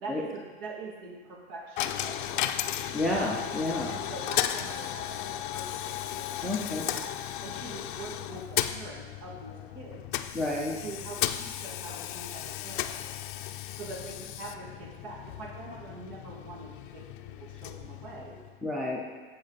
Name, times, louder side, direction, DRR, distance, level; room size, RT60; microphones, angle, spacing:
voice 1, 0.0-3.0 3.7-10.0 10.8-12.9 13.8-18.4, right 3 dB, 60° right, -2 dB, 2.2 m, -44 dB
Coin (dropping), 1.8-18.7, left 12 dB, 55° left, 0.5 m, -35 dB
voice 2, 2.9-3.9 6.4-6.8 10.3-10.8 18.6-19.0, left 2 dB, ahead, -2 dB, 0.4 m, -30 dB
7.4 x 7.4 x 4.0 m, 1.3 s
supercardioid pair, 150°, 31 cm